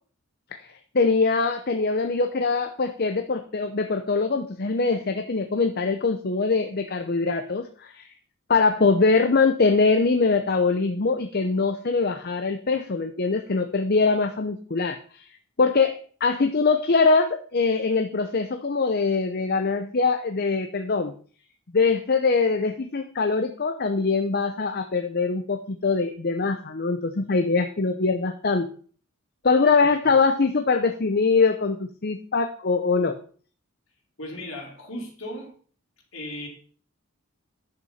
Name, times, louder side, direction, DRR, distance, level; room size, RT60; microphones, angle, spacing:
voice 1, 0.9-8.1 8.5-15.3 15.6-21.1 21.7-28.7 29.4-33.2, left 4 dB, 50° left, 7 dB, 0.7 m, -23 dB
voice 2, 34.2-35.5 36.1-36.5, left 1 dB, 65° left, -2 dB, 4.1 m, -36 dB
10.5 x 6.8 x 5.7 m, 0.44 s
head